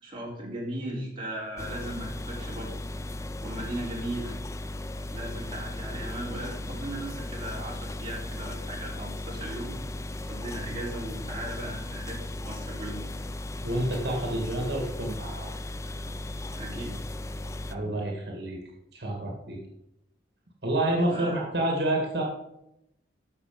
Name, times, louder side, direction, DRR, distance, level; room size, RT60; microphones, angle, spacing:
voice 1, 0.0-2.7 3.4-4.3 5.1-9.8 10.3-13.0 16.5-17.0 21.1-21.4, right 1 dB, 30° right, -4 dB, 3.4 m, -37 dB
sound 1, 1.6-17.7, left 1 dB, 15° left, 0.3 m, -36 dB
voice 2, 13.6-15.5 17.7-18.6 18.9-19.6 20.6-22.2, right 1 dB, 70° right, -1 dB, 2.2 m, -28 dB
14.0 x 5.8 x 5.4 m, 0.86 s
head